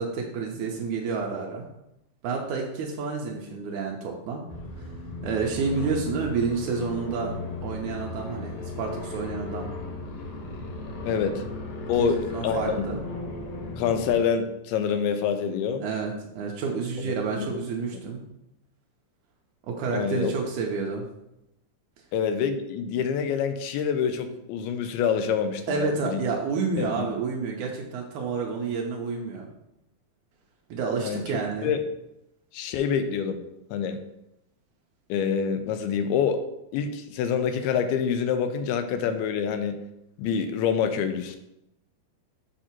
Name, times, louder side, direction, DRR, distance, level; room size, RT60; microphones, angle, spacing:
voice 1, 0.0-1.7 2.2-4.4 4.8-4.9 5.2-9.7 12.0-13.0 15.8-18.2 19.6-21.1 25.7-29.5 30.7-31.7, right 5 dB, 90° right, 0 dB, 1.7 m, -29 dB
sound 1, 4.5-14.2, left 2 dB, 70° left, 2.4 m, -36 dB
voice 2, 11.1-11.4 11.9-12.9 13.8-15.8 17.0-17.5 19.9-20.3 22.1-26.2 26.8-27.1 31.0-31.2 31.6-31.8 32.5-33.4 33.7-34.0 35.1-36.4 36.7-39.8 40.2-41.4, left 7 dB, 85° left, 8 dB, 2.5 m, -26 dB
7.5 x 2.7 x 5.8 m, 0.85 s
omnidirectional pair, 4.5 m